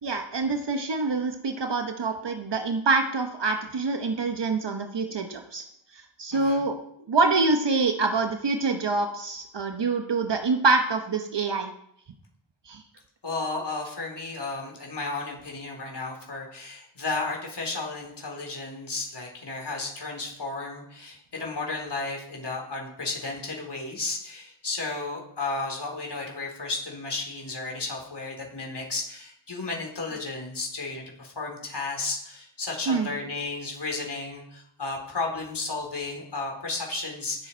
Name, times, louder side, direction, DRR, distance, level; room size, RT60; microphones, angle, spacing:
voice 1, 0.0-5.6 5.9-6.8 7.1-11.7 12.7-12.8 32.9-33.1, right 3 dB, 60° right, 5 dB, 1.2 m, -26 dB
voice 2, 6.3-6.6 13.2-37.5, left 3 dB, 55° left, 0 dB, 4.0 m, -33 dB
18.0 x 7.8 x 4.5 m, 0.73 s
wide cardioid pair, 85°, 49 cm